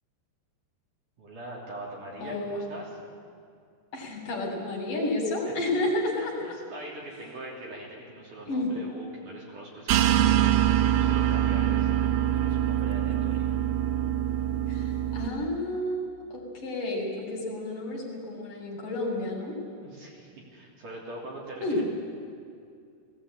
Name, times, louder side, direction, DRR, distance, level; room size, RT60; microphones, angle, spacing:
voice 1, 1.2-3.0 6.4-13.6 19.8-21.8, right 1 dB, 50° right, -4 dB, 4.5 m, -42 dB
voice 2, 2.2-2.7 3.9-6.6 8.5-8.7 14.7-16.0 16.3-19.6 21.6-21.8, left 1 dB, 50° left, -1 dB, 4.4 m, -31 dB
sound 1, 9.9-15.3, right 11 dB, 80° right, 2.4 m, -24 dB
18.5 x 17.0 x 8.6 m, 2.3 s
omnidirectional pair, 5.0 m